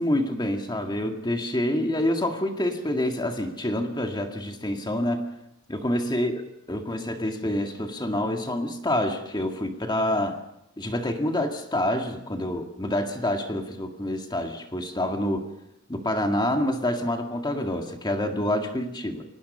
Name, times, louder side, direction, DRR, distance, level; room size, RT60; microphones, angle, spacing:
voice 1, 0.0-5.3 5.7-10.4 10.8-15.5 15.9-19.2, left 1 dB, 20° left, 4 dB, 1.9 m, -27 dB
29.0 x 18.5 x 5.5 m, 0.85 s
head